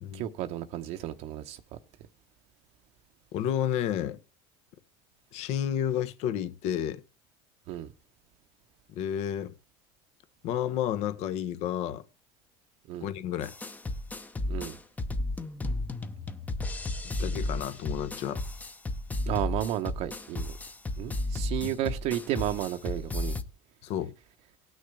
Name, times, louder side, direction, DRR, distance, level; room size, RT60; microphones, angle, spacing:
voice 1, 0.1-1.6 7.7-7.9 12.9-13.1 14.5-14.8 19.3-20.5 21.0-23.4, right 12 dB, 60° right, 0.8 m, -32 dB
voice 2, 3.3-4.2 5.3-7.0 8.9-9.5 10.4-12.0 13.0-13.5 17.2-18.4 21.6-21.7 23.8-24.1, left 10 dB, 60° left, 1.1 m, -31 dB
sound 1, 13.4-23.4, left 2 dB, 10° left, 0.8 m, -33 dB
18.5 x 6.4 x 3.3 m
supercardioid pair, 120°, 13 cm